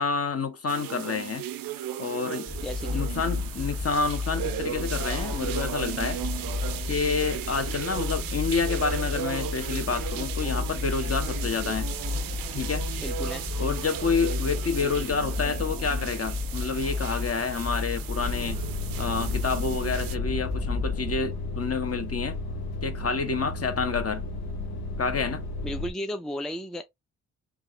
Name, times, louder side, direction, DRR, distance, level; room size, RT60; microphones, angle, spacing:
voice 1, 0.0-1.4 2.0-2.5 2.9-6.2 6.9-11.9 12.5-12.8 13.6-18.6 19.0-22.4 22.8-24.3 25.0-25.4, left 5 dB, 40° left, 1.0 m, -28 dB
sound 1, 0.7-20.1, right 11 dB, 65° right, 0.6 m, -36 dB
sound 2, 2.5-21.2, left 4 dB, 15° left, 1.2 m, -32 dB
voice 2, 2.6-3.0 13.0-13.4 25.6-26.8, equal, ahead, 0.5 m, -34 dB
sound 3, 18.2-25.9, left 2 dB, 75° left, 0.9 m, -34 dB
3.5 x 2.3 x 3.7 m
hypercardioid pair, 40°, 38 cm